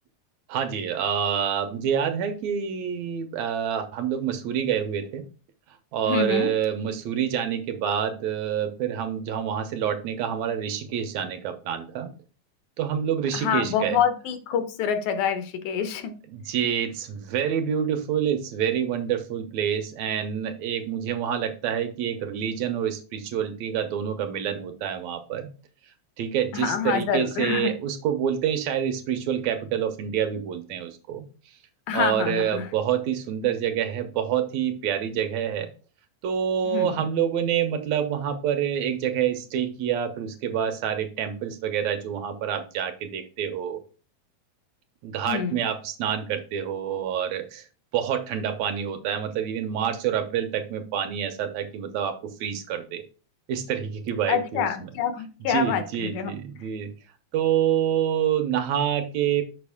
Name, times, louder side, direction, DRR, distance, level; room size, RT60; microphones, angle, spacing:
voice 1, 0.5-5.2 5.9-12.1 12.8-14.0 16.3-25.5 26.2-31.2 31.9-35.7 36.2-43.8 45.0-47.6 47.9-53.0 53.5-54.7 55.5-56.9 57.3-59.4, right 9 dB, 75° right, 7 dB, 2.0 m, -27 dB
voice 2, 6.1-6.5 13.3-16.1 26.5-27.7 31.9-32.7 36.7-37.1 45.3-45.6 54.3-56.3, left 7 dB, 80° left, 9 dB, 2.2 m, -26 dB
6.7 x 5.2 x 3.5 m, 0.36 s
omnidirectional pair, 3.3 m